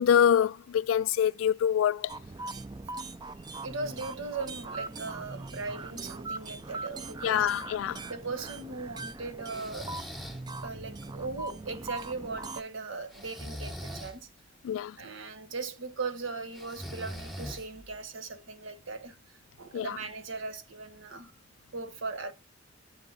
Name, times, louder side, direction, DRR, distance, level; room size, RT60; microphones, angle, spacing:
voice 1, 0.0-2.1 7.2-8.0 14.6-15.0 19.7-20.0, left 9 dB, 90° left, 0.3 m, -25 dB
sound 1, 2.1-12.6, right 3 dB, 20° right, 0.4 m, -41 dB
voice 2, 3.6-7.5 8.1-10.1 10.6-14.3 15.0-19.2 19.6-21.3 21.7-22.3, right 3 dB, 80° right, 1.1 m, -38 dB
Breathing, 9.5-10.4 13.1-14.2 16.5-17.9, equal, ahead, 0.8 m, -41 dB
7.6 x 4.0 x 3.9 m
head